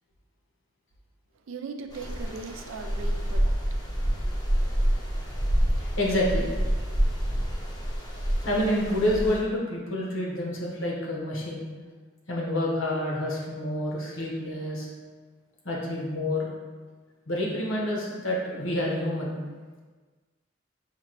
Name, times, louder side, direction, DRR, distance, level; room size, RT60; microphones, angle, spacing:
voice 1, 1.5-3.6, right 4 dB, 80° right, 6 dB, 0.4 m, -39 dB
sound 1, 1.9-9.4, equal, 20° left, 0.6 m, -27 dB
voice 2, 5.8-6.5 8.4-11.6 12.3-14.9 15.6-16.5 17.3-19.3, left 1 dB, 80° left, -3 dB, 1.1 m, -28 dB
5.8 x 2.8 x 3.0 m, 1.4 s
head